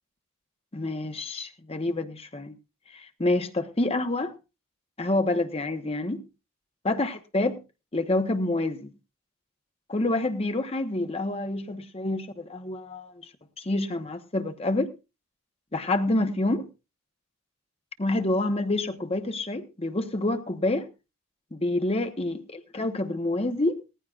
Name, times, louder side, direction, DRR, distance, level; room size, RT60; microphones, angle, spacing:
voice 1, 0.7-2.6 2.9-4.3 5.0-6.2 6.8-7.6 7.9-8.9 9.9-13.1 13.6-14.9 15.7-16.7 18.0-20.9 21.5-23.8, left 2 dB, 30° left, 0.9 m, -27 dB
17.5 x 14.5 x 2.4 m
head